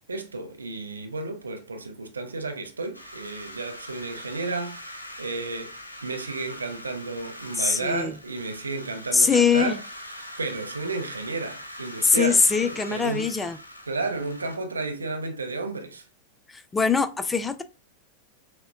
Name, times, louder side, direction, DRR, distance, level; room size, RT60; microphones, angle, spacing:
voice 1, 0.1-5.7 6.0-9.8 10.4-13.3 13.9-16.1, right 3 dB, 75° right, 0.6 m, -32 dB
sound 1, 2.9-14.6, equal, 85° left, 0.6 m, -42 dB
voice 2, 7.6-8.1 9.1-9.8 12.0-13.6 16.5-17.6, left 5 dB, 10° left, 0.4 m, -22 dB
6.0 x 2.1 x 2.4 m
figure-of-eight pair, 90°, 0 cm